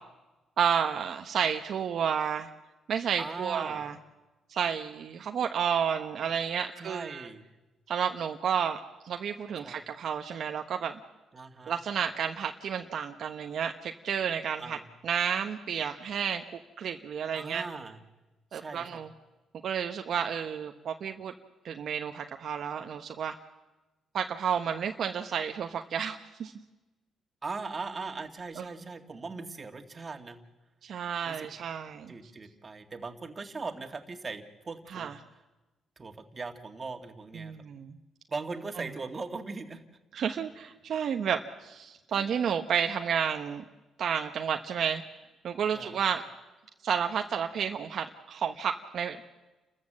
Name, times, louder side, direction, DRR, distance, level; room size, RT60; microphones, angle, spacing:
voice 1, 0.6-2.5 2.9-4.0 4.5-7.3 7.9-8.8 9.0-10.9 11.7-14.8 15.0-16.4 16.8-17.7 18.5-19.1 19.6-21.3 21.6-23.3 24.1-26.5 28.6-28.7 30.8-32.1 34.9-35.1 37.3-38.0 40.1-43.6 44.0-45.0 45.4-46.2 46.8-49.3, right 7 dB, 60° right, 5 dB, 1.0 m, -31 dB
voice 2, 3.2-3.9 6.8-7.4 9.6-9.8 11.3-11.7 14.6-14.9 17.3-18.0 18.5-19.0 27.4-30.4 31.2-31.5 32.1-35.1 36.0-37.5 38.3-39.8 42.1-42.2 45.7-46.0, right 4 dB, 30° right, 5 dB, 2.2 m, -39 dB
29.5 x 14.0 x 7.6 m, 1.1 s
cardioid pair, 90°, 0 cm